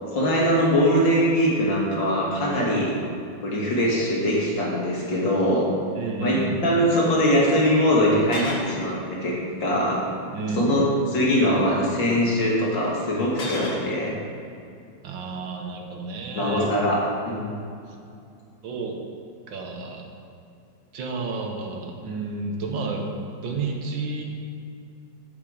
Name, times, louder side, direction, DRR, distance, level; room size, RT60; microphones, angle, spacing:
voice 1, 0.0-2.9 3.4-5.7 6.2-10.0 10.5-14.1 16.3-17.6, equal, 65° left, -3 dB, 2.5 m, -22 dB
sound 1, 5.7-5.8 8.2-8.7 10.0-10.4 13.3-13.9, left 2 dB, 40° left, 1.2 m, -33 dB
voice 2, 6.0-6.7 10.3-10.7 15.0-16.7 18.6-18.9 19.5-20.1 20.9-23.1 23.4-24.2, right 4 dB, 75° right, 2 dB, 1.8 m, -31 dB
8.7 x 8.2 x 5.0 m, 2.5 s
omnidirectional pair, 2.1 m